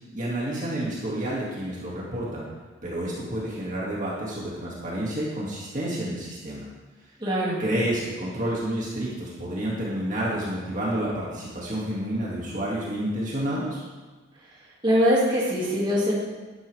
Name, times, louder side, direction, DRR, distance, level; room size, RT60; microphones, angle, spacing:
voice 1, 0.1-2.5 2.8-6.7 7.6-13.8, right 1 dB, 40° right, -6 dB, 2.2 m, -29 dB
voice 2, 7.2-7.6 14.8-16.1, equal, 25° right, -7 dB, 2.4 m, -22 dB
12.0 x 11.0 x 3.5 m, 1.3 s
head